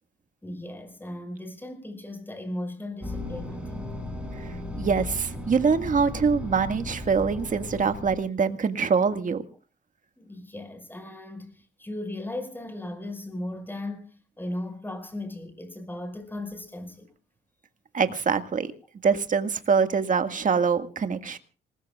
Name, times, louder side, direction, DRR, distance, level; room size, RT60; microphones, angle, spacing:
voice 1, 0.4-4.0 10.2-17.1, left 1 dB, 10° left, 5.3 m, -37 dB
sound 1, 3.0-8.2, left 2 dB, 5° right, 7.7 m, -36 dB
voice 2, 4.4-9.4 17.9-18.7 19.0-21.4, right 5 dB, 40° right, 1.8 m, -24 dB
26.5 x 20.0 x 2.4 m
cardioid pair, 90°, 20 cm